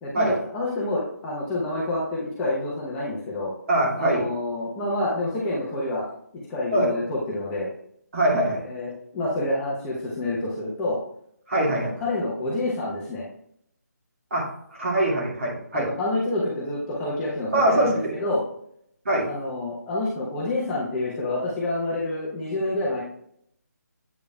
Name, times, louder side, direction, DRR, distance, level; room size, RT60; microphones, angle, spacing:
voice 1, 0.0-3.5 4.0-6.1 6.5-7.7 8.7-11.0 11.6-13.3 15.7-18.4 19.3-23.0, left 2 dB, 10° left, -6 dB, 0.9 m, -28 dB
voice 2, 3.7-4.3 6.7-6.9 8.1-8.7 11.5-11.9 14.3-14.5 14.8-15.9 17.5-18.0 19.1-19.3, right 1 dB, 50° right, -2 dB, 2.1 m, -22 dB
8.1 x 5.1 x 2.3 m, 0.69 s
figure-of-eight pair, 150°, 9 cm